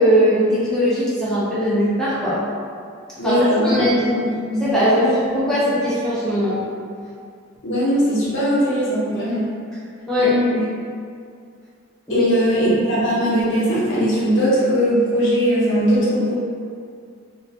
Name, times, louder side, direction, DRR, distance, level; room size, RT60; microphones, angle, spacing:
voice 1, 0.0-2.4 3.2-4.1 4.6-6.6 10.1-10.3 12.1-12.2, equal, 5° left, -11 dB, 0.5 m, -19 dB
voice 2, 3.2-4.6 4.9-5.2 7.6-9.5 10.2-10.7 12.1-16.3, equal, 65° left, -8 dB, 0.7 m, -20 dB
2.2 x 2.2 x 2.7 m, 2.2 s
head